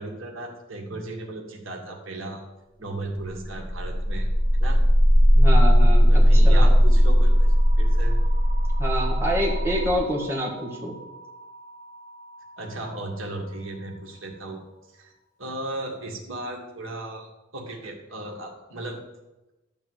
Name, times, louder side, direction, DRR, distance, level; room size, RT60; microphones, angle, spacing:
voice 1, 0.0-2.4 2.8-4.8 6.1-8.2 12.6-14.6 14.9-15.1 15.4-17.3 17.5-19.0, right 2 dB, 90° right, 0 dB, 1.9 m, -36 dB
sound 1, 3.4-13.3, equal, 50° left, 2.0 m, -19 dB
voice 2, 5.4-6.8 8.8-11.0, equal, 15° right, -2 dB, 2.0 m, -27 dB
12.0 x 4.1 x 7.9 m, 1.0 s
head